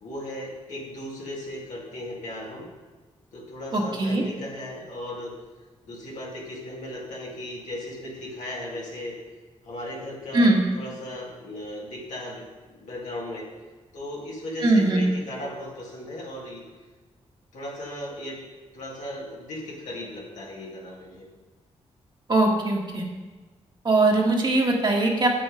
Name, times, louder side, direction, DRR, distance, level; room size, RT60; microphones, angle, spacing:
voice 1, 0.0-2.7 3.3-5.3 5.8-9.2 9.6-13.5 13.9-16.6 17.5-18.4 18.7-21.3, left 1 dB, 90° left, -5 dB, 2.1 m, -36 dB
voice 2, 3.7-4.2 10.3-10.6 14.6-15.0 22.3-23.0 23.8-25.3, right 2 dB, 40° right, -1 dB, 1.6 m, -20 dB
7.8 x 6.3 x 5.0 m, 1.3 s
cardioid pair, 85°, 12 cm